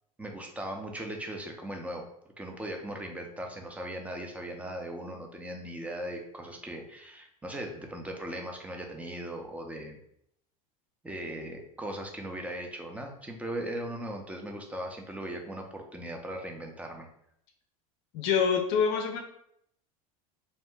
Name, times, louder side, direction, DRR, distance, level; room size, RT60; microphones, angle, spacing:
voice 1, 0.2-2.0 2.4-10.0 11.0-17.1, right 1 dB, 5° right, 2 dB, 0.5 m, -38 dB
voice 2, 18.1-19.2, left 6 dB, 60° left, 3 dB, 0.5 m, -26 dB
2.6 x 2.1 x 3.6 m, 0.72 s
hypercardioid pair, 100°, 19 cm